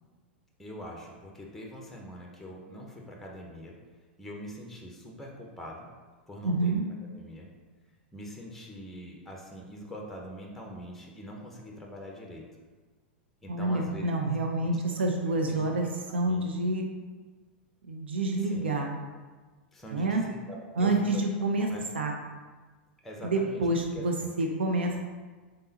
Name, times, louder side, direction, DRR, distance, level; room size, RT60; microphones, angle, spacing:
voice 1, 0.6-3.8 4.2-5.9 6.3-6.8 7.1-7.5 8.1-12.5 13.4-14.1 14.6-14.7 15.5-15.7 16.1-16.5 18.4-18.7 19.7-21.8 23.0-23.6 23.9-24.3, equal, 5° left, 0 dB, 0.7 m, -43 dB
voice 2, 6.4-6.8 13.5-16.9 17.9-18.9 19.9-20.2 20.8-21.7 21.9-22.1 23.2-25.0, right 2 dB, 80° right, 2 dB, 0.5 m, -28 dB
3.8 x 3.7 x 2.8 m, 1.4 s
hypercardioid pair, 95°, 6 cm